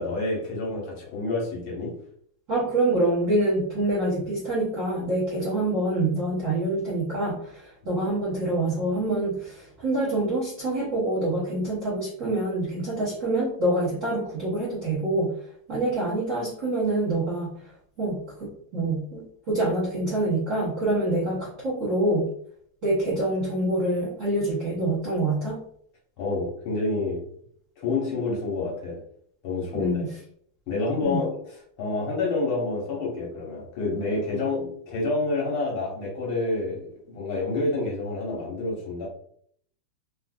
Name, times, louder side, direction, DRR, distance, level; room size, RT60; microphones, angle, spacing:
voice 1, 0.0-1.9 26.2-27.2 27.8-29.0 29.4-30.0 30.7-31.4 31.8-39.1, left 3 dB, 70° left, -3 dB, 1.7 m, -28 dB
voice 2, 2.5-15.3 15.7-17.5 18.0-22.3 22.8-25.6 29.7-30.1 31.0-31.2, right 2 dB, 55° right, -7 dB, 0.9 m, -26 dB
3.8 x 2.4 x 2.3 m, 0.63 s
omnidirectional pair, 2.4 m